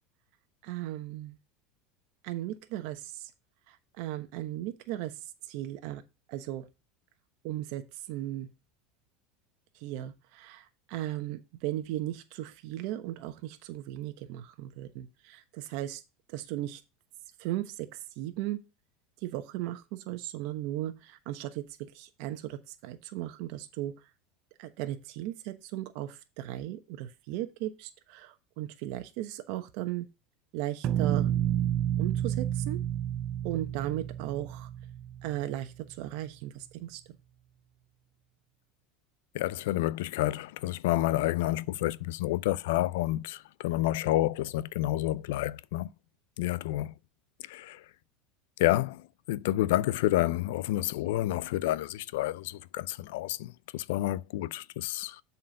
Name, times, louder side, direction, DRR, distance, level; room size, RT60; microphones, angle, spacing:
voice 1, 0.6-1.4 2.2-3.3 3.7-5.2 5.4-6.0 6.3-6.7 7.4-8.5 9.7-16.0 16.3-16.8 17.4-18.6 19.2-21.6 21.9-24.1 24.6-30.1 30.5-31.3 32.0-32.8 33.4-34.7 35.2-37.0, right 14 dB, 65° right, 1.0 m, -36 dB
sound 1, 30.8-35.7, right 11 dB, 45° right, 0.4 m, -30 dB
voice 2, 39.3-45.9 46.4-46.9 47.4-47.9 48.6-55.2, left 15 dB, 80° left, 0.4 m, -29 dB
7.4 x 4.5 x 5.3 m
supercardioid pair, 120°, 0 cm